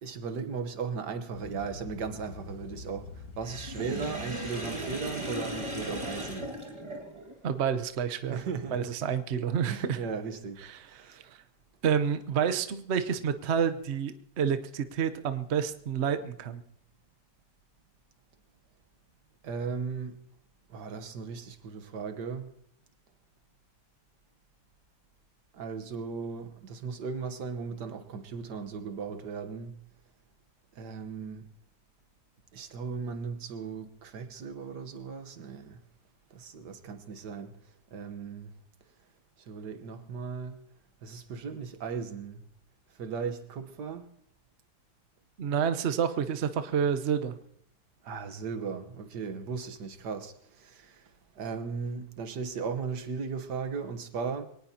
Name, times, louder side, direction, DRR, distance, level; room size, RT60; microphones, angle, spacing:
voice 1, 0.0-6.5 8.3-8.9 9.7-10.6 11.0-11.2 19.4-20.2 20.7-22.5 25.5-29.8 30.8-31.5 32.5-35.8 36.3-37.5 37.9-38.5 39.5-40.6 41.0-42.4 43.0-44.1 48.0-51.1 51.4-54.5, right 5 dB, 80° right, 1.7 m, -37 dB
sound 1, 1.3-6.4, left 4 dB, 70° left, 1.7 m, -46 dB
Sink (filling or washing), 3.4-7.4, right 1 dB, 15° right, 1.9 m, -37 dB
voice 2, 7.4-8.4 8.7-10.0 10.6-11.1 11.8-16.6 45.4-47.4, right 7 dB, 50° right, 1.0 m, -29 dB
23.5 x 18.5 x 2.8 m
omnidirectional pair, 1.8 m